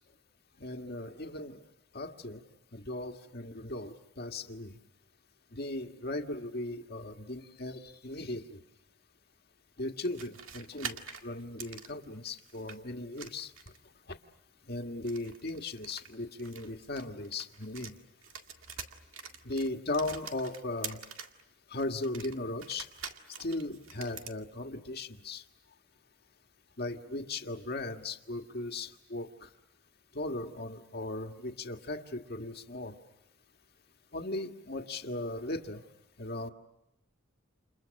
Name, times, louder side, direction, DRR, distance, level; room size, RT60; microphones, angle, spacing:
voice 1, 0.6-1.6 1.9-2.4 2.7-4.8 5.5-8.6 9.8-13.5 14.7-17.9 19.4-21.0 21.7-22.9 23.4-25.4 26.8-29.5 30.1-33.0 34.1-35.8 36.2-36.5, left 2 dB, 50° left, 4 dB, 1.8 m, -37 dB
sound 1, 10.0-12.8 13.1-13.9 15.0-17.9 18.2-21.4 21.8-24.4, right 7 dB, 85° right, 2.0 m, -45 dB
30.0 x 29.0 x 6.5 m, 0.85 s
head